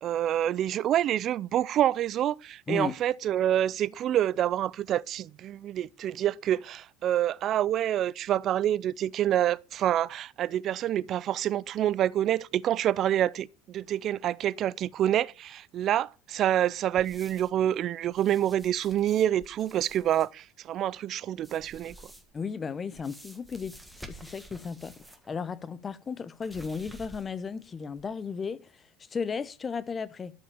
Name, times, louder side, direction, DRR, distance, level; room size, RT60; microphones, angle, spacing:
voice 1, 0.0-22.0, right 11 dB, 40° right, 0.4 m, -27 dB
sound 1, 17.0-17.6 18.1-20.3 21.4-22.4 22.9-25.3 25.6-25.7 26.4-27.5 27.9-28.0, right 1 dB, 5° right, 1.6 m, -50 dB
voice 2, 22.3-24.9 25.3-30.3, left 5 dB, 20° left, 0.8 m, -35 dB
13.0 x 5.6 x 6.9 m
cardioid pair, 145°, 0 cm